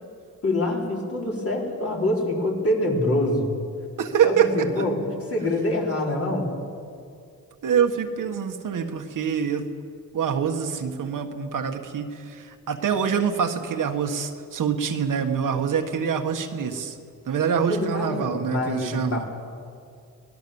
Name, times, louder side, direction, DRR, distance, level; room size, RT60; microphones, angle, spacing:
voice 1, 0.4-3.5 4.2-6.5 17.7-19.3, left 1 dB, 40° left, -2 dB, 4.9 m, -25 dB
voice 2, 4.0-4.8 7.6-9.7 10.1-17.0 17.2-19.2, right 7 dB, 60° right, 5 dB, 1.6 m, -25 dB
24.5 x 18.5 x 7.2 m, 2.4 s
cardioid pair, 110°, 35 cm